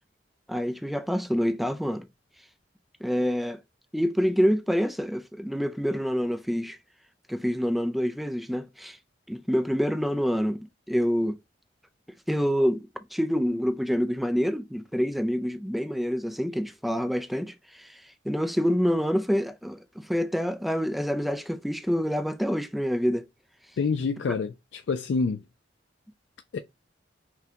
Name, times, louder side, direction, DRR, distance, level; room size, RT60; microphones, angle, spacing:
voice 1, 0.5-2.1 3.0-3.6 3.9-6.8 7.3-9.0 9.3-10.6 10.9-11.4 12.3-18.0 18.2-23.3, equal, ahead, 0.4 m, -27 dB
voice 2, 23.8-25.4 26.5-26.6, left 4 dB, 70° left, 0.4 m, -27 dB
5.8 x 2.2 x 2.8 m
head